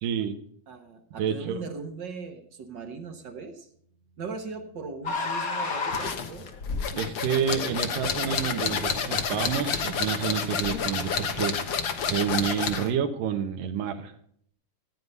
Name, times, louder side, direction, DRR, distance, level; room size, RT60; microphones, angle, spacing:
voice 1, 0.0-0.4 1.2-1.6 7.0-11.6 12.0-14.1, right 8 dB, 75° right, 6 dB, 2.7 m, -29 dB
voice 2, 0.7-3.7 4.2-6.5, right 4 dB, 55° right, 5 dB, 1.3 m, -39 dB
sound 1, 5.0-7.0 8.7-8.8 10.5-11.0, left 4 dB, 45° left, 1.1 m, -31 dB
sound 2, 5.9-12.9, left 6 dB, 70° left, 1.1 m, -30 dB
15.5 x 9.6 x 5.4 m, 0.63 s
omnidirectional pair, 3.9 m